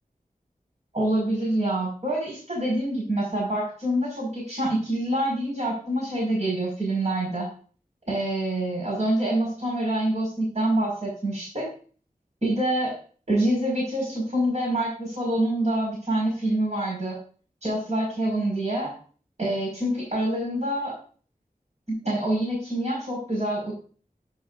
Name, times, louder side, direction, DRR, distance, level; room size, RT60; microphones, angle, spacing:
voice 1, 0.9-7.5 8.1-11.7 12.4-12.9 13.3-17.2 17.6-18.9 19.4-21.0 21.9-23.7, right 1 dB, 50° right, -4 dB, 5.7 m, -26 dB
10.5 x 9.2 x 2.7 m, 0.41 s
wide cardioid pair, 45°, 15 cm